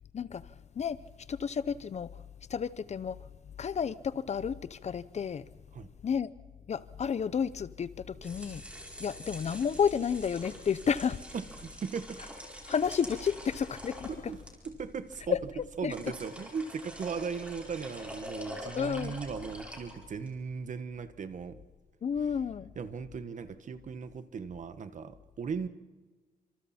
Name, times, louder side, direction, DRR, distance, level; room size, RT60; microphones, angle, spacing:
voice 1, 0.1-1.0 1.3-2.1 2.5-3.2 3.6-5.5 6.0-6.3 6.7-8.6 9.0-11.2 12.7-14.1 15.3-15.9 18.8-19.2 22.0-22.7, left 7 dB, 45° left, 0.7 m, -31 dB
sound 1, 8.1-20.4, equal, 5° right, 4.8 m, -46 dB
voice 2, 11.3-12.2 14.1-15.4 15.8-21.6 22.7-25.7, right 6 dB, 50° right, 1.4 m, -38 dB
29.5 x 26.5 x 4.3 m
wide cardioid pair, 165°, 16 cm